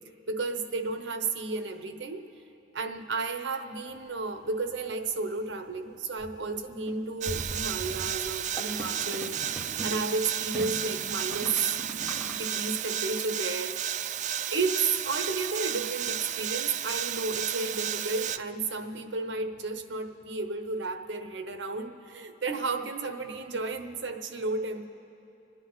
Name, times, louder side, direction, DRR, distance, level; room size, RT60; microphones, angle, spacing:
voice 1, 0.3-2.3 2.7-9.4 9.8-11.7 12.4-13.8 14.5-24.8, right 3 dB, 70° right, 8 dB, 0.9 m, -32 dB
sound 1, 3.9-4.0 4.6-4.7 4.9-5.1 5.4-5.5 5.9-12.3, right 1 dB, 5° left, 1.8 m, -40 dB
sound 2, 7.2-18.4, right 10 dB, 40° right, 0.3 m, -33 dB
27.5 x 9.9 x 4.0 m, 2.8 s
head